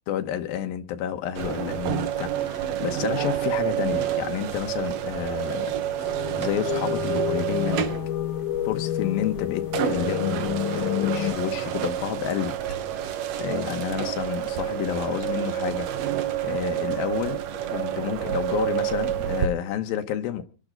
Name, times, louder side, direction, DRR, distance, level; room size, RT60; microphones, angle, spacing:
voice 1, 0.1-5.8 6.0-7.9 8.6-12.6 13.4-15.9 16.4-17.4 17.7-20.4, left 10 dB, 90° left, 3.0 m, -30 dB
sound 1, 1.4-19.5, right 11 dB, 65° right, 1.7 m, -29 dB
sound 2, 5.9-11.3, left 13 dB, 70° left, 2.2 m, -29 dB
sound 3, 13.4-19.3, right 4 dB, 50° right, 4.7 m, -48 dB
26.5 x 10.5 x 3.9 m
omnidirectional pair, 4.1 m